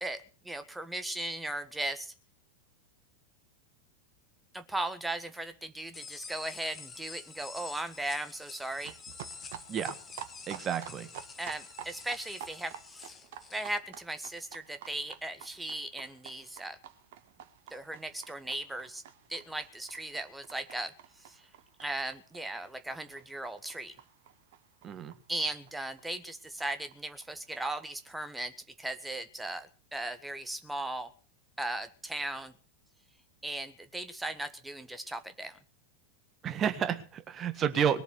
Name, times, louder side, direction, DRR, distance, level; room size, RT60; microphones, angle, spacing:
voice 1, 0.0-2.1 4.5-9.0 11.4-13.1 13.5-16.8 17.7-19.0 19.3-21.4 21.8-23.9 25.3-28.5 28.8-31.1 31.6-32.5 33.4-35.6, right 1 dB, 5° right, 9 dB, 1.6 m, -37 dB
sound 1, 5.9-13.8, left 5 dB, 20° left, 1.4 m, -48 dB
sound 2, 8.8-26.0 26.3-26.4 26.6-26.7 26.9-27.0 27.2-27.9, right 10 dB, 50° right, 1.5 m, -50 dB
voice 2, 10.5-11.1 24.8-25.1 36.4-38.0, right 8 dB, 25° right, 11 dB, 1.6 m, -30 dB
21.0 x 7.1 x 8.3 m, 0.39 s
figure-of-eight pair, 90°, 0 cm